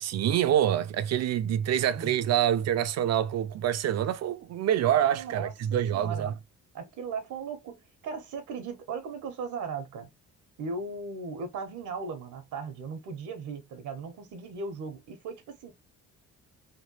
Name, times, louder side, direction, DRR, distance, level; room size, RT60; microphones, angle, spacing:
voice 1, 0.0-6.3, right 10 dB, 60° right, 0.5 m, -26 dB
voice 2, 5.1-6.3 6.7-7.8 8.0-10.1 10.6-15.7, right 4 dB, 80° right, 1.0 m, -37 dB
3.2 x 2.3 x 2.9 m
cardioid pair, 90°, 30 cm